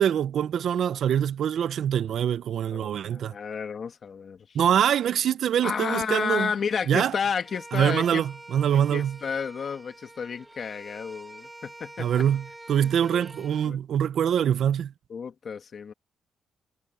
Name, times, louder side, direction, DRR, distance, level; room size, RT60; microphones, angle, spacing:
voice 1, 0.0-3.3 4.5-6.5 6.9-7.1 7.7-9.2 12.0-14.9, right 9 dB, 65° right, 0.5 m, -24 dB
voice 2, 2.7-4.5 5.6-8.2 8.9-12.2 12.8-13.8 15.1-15.9, left 6 dB, 45° left, 2.0 m, -32 dB
Bowed string instrument, 7.4-13.7, right 2 dB, 10° right, 5.5 m, -47 dB
cardioid pair, 130°, 0 cm